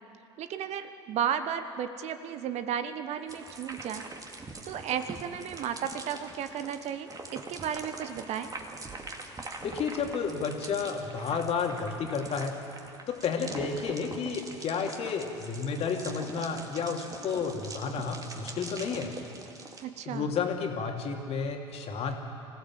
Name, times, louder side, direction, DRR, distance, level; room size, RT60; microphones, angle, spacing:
voice 1, 0.4-4.1 4.7-8.5 19.8-20.3, right 8 dB, 45° right, 10 dB, 1.1 m, -34 dB
sound 1, 3.3-19.8, right 3 dB, 25° right, 2.4 m, -43 dB
voice 2, 9.6-12.5 13.1-19.1 20.0-22.1, left 5 dB, 40° left, 2 dB, 2.8 m, -31 dB
25.5 x 15.5 x 7.6 m, 2.7 s
hypercardioid pair, 75°, 15 cm